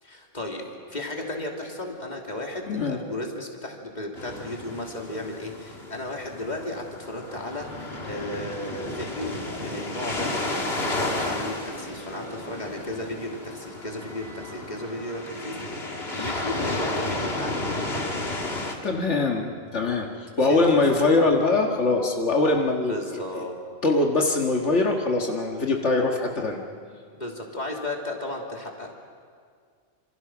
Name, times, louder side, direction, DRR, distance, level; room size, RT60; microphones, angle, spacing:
voice 1, 0.0-7.7 8.0-18.1 20.5-21.0 22.9-23.6 26.9-29.0, left 1 dB, 40° left, 0 dB, 3.1 m, -35 dB
voice 2, 2.7-3.0 18.8-22.9 23.8-26.6, left 3 dB, 80° left, 1 dB, 2.1 m, -22 dB
sound 1, 4.2-18.7, left 2 dB, 60° left, 2.7 m, -33 dB
sound 2, 7.6-13.1, equal, 20° left, 6.5 m, -41 dB
sound 3, 10.1-22.1, equal, 60° right, 7.7 m, -48 dB
27.0 x 26.5 x 6.1 m, 2.1 s
omnidirectional pair, 1.2 m